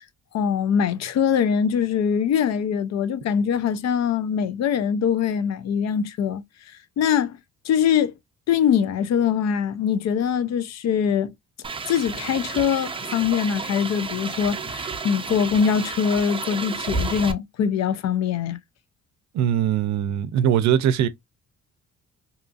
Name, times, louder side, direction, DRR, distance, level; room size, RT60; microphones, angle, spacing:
voice 1, 0.3-6.4 7.0-7.4 7.7-8.1 8.5-11.3 11.9-18.6, left 7 dB, 60° left, 0.5 m, -23 dB
sound 1, 11.6-17.3, right 4 dB, 20° right, 0.4 m, -31 dB
voice 2, 19.3-21.1, right 10 dB, 70° right, 0.5 m, -21 dB
2.7 x 2.3 x 2.4 m
cardioid pair, 90°, 30 cm